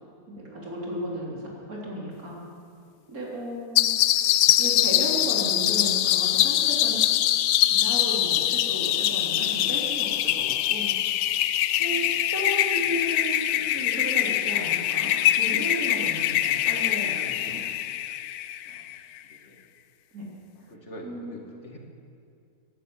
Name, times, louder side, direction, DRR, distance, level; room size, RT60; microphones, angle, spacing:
voice 1, 0.3-1.4 1.7-2.4 3.1-3.9 4.6-7.0 7.7-10.9 11.7-17.6 20.1-20.3 21.0-21.4, equal, 65° right, -3 dB, 3.9 m, -34 dB
sound 1, 3.8-19.0, left 12 dB, 75° left, 1.1 m, -23 dB
voice 2, 19.3-19.7 20.7-21.8, equal, 45° left, 1 dB, 2.3 m, -45 dB
17.0 x 11.0 x 7.6 m, 2.4 s
omnidirectional pair, 1.6 m